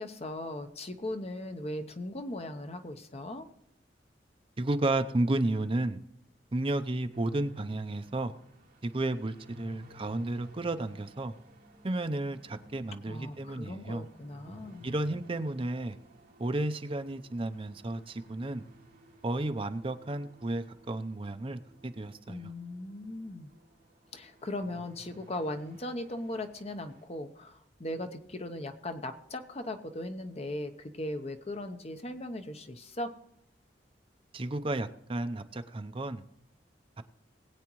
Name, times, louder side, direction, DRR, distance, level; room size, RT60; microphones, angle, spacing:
voice 1, 0.0-3.5 13.1-14.9 22.3-23.5 24.1-33.1, left 1 dB, 35° left, 7 dB, 0.9 m, -38 dB
voice 2, 4.6-6.0 6.5-8.3 8.8-11.3 11.8-14.1 14.8-16.0 16.4-18.6 19.2-22.5 34.3-36.2 37.0-37.1, right 2 dB, 30° right, 8 dB, 0.6 m, -32 dB
sound 1, 7.1-27.1, equal, 55° right, 2.4 m, -56 dB
20.5 x 8.5 x 3.1 m, 0.79 s
head